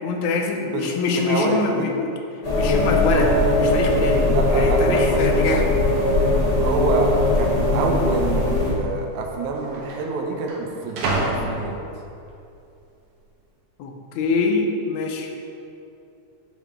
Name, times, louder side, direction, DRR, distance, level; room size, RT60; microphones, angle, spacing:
voice 1, 0.0-2.1 2.6-5.8 13.8-15.3, left 4 dB, 80° left, 3 dB, 2.0 m, -24 dB
voice 2, 0.7-1.9 3.1-3.4 4.2-5.6 6.6-7.1 7.4-11.8, right 4 dB, 85° right, 2 dB, 2.0 m, -27 dB
sound 1, 2.4-8.7, left 2 dB, 45° left, 0.4 m, -19 dB
sound 2, 5.0-5.1 5.9-6.4 6.7-6.8 7.6-7.8 8.8-8.9 9.1-12.3 12.8-13.3, right 2 dB, 65° right, 1.6 m, -31 dB
7.3 x 6.4 x 3.5 m, 2.6 s
omnidirectional pair, 3.4 m